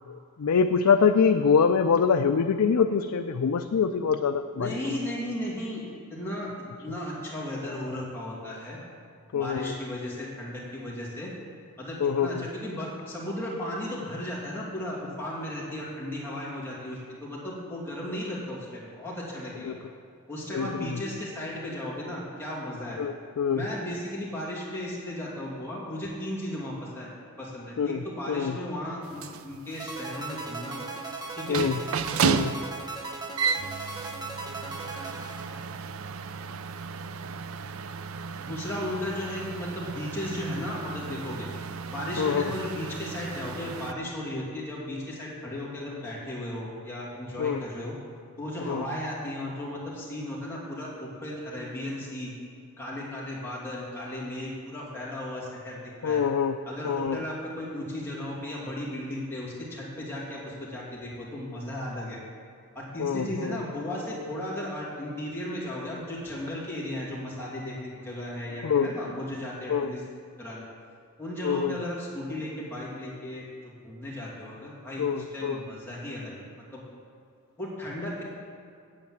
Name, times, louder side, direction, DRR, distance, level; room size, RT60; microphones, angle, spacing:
voice 1, 0.1-5.0 9.3-9.7 12.0-12.5 19.6-19.8 20.5-21.0 23.0-23.7 27.8-28.6 31.5-31.8 32.2-32.6 42.2-42.5 47.4-47.6 48.7-48.8 56.0-56.6 56.8-57.2 63.0-63.6 68.6-68.9 69.7-69.9 71.4-71.8 75.0-75.6, left 6 dB, 85° left, 7 dB, 0.4 m, -25 dB
voice 2, 4.6-5.8 6.1-6.5 6.8-8.8 9.3-11.3 11.8-19.8 20.3-23.0 23.5-27.1 27.4-30.8 31.4-31.6 38.4-41.5 41.9-47.9 48.4-52.3 52.8-56.2 56.7-62.2 62.7-70.0 70.4-70.6 71.2-75.0 75.3-76.3 76.7-76.8 77.6-78.2, left 1 dB, 10° left, -6 dB, 2.6 m, -35 dB
sound 1, 29.0-43.9, right 6 dB, 65° right, 0.5 m, -34 dB
sound 2, 29.8-36.1, right 3 dB, 20° right, 0.9 m, -38 dB
8.8 x 8.1 x 7.7 m, 2.4 s
head